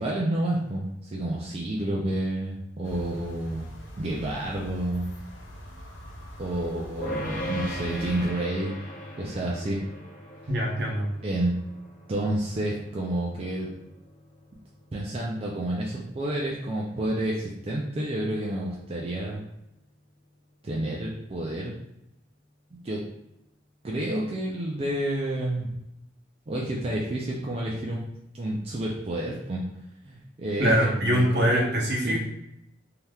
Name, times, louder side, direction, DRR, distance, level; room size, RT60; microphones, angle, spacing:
voice 1, 0.0-3.7 4.0-5.1 6.4-8.8 9.2-9.8 11.2-11.5 12.1-13.7 14.9-19.4 20.6-21.7 22.7-23.0 23.8-25.7 26.5-28.0 28.3-29.6 30.0-32.2, right 1 dB, 35° right, -4 dB, 0.4 m, -29 dB
sound 1, 2.8-8.3, equal, 85° left, 0.6 m, -43 dB
sound 2, 7.0-18.3, equal, 45° left, 0.7 m, -40 dB
voice 2, 10.5-11.1 30.6-32.2, equal, 65° right, -2 dB, 0.8 m, -23 dB
3.3 x 2.8 x 2.3 m, 0.81 s
head